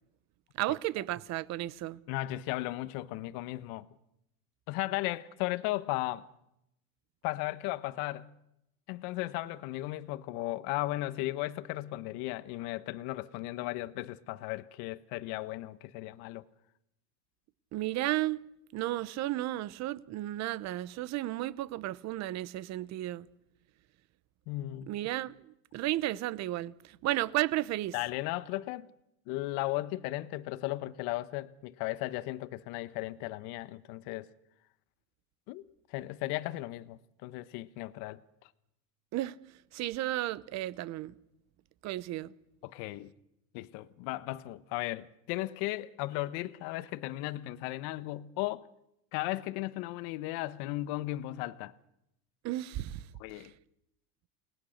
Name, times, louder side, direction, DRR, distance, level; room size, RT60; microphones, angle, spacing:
voice 1, 0.6-2.0 17.7-18.4 18.7-23.3 24.9-25.3 25.7-27.9 39.1-39.4 39.7-41.1 41.8-42.3 52.4-53.0 53.3-53.5, right 16 dB, 35° right, 0.9 m, -33 dB
voice 2, 2.1-3.8 4.7-6.3 7.2-8.3 8.9-16.4 24.5-24.9 27.9-28.9 29.3-34.3 35.5-35.6 35.9-38.2 42.6-43.1 43.5-48.7 49.1-51.7 53.2-53.5, left 17 dB, 55° left, 1.2 m, -36 dB
29.0 x 20.0 x 6.5 m
supercardioid pair, 135°, 45 cm